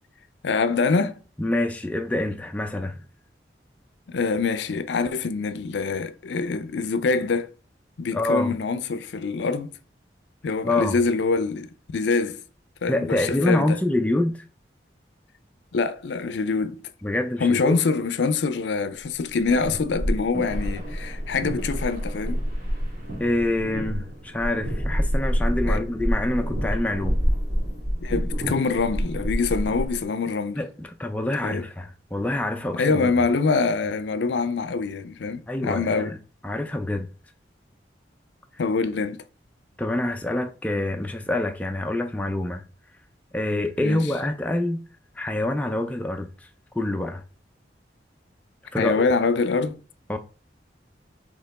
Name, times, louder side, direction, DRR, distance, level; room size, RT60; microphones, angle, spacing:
voice 1, 0.4-1.2 4.1-7.5 8.0-9.7 10.4-12.4 12.8-13.8 15.7-16.9 17.4-22.4 25.7-25.8 28.0-30.6 31.4-31.7 32.7-36.2 38.6-39.2 43.8-44.1 48.8-49.8, left 4 dB, 80° left, 0.4 m, -25 dB
voice 2, 1.4-3.0 8.1-8.5 10.6-10.9 12.9-14.4 17.0-17.8 23.2-27.2 30.6-33.1 35.5-36.2 36.4-37.1 39.8-42.6 43.3-44.8 45.2-46.5 46.7-47.2 48.7-49.0 50.1-50.2, left 1 dB, 10° left, 0.3 m, -26 dB
sound 1, 19.4-30.0, equal, 45° right, 1.7 m, -27 dB
4.3 x 2.9 x 4.0 m
head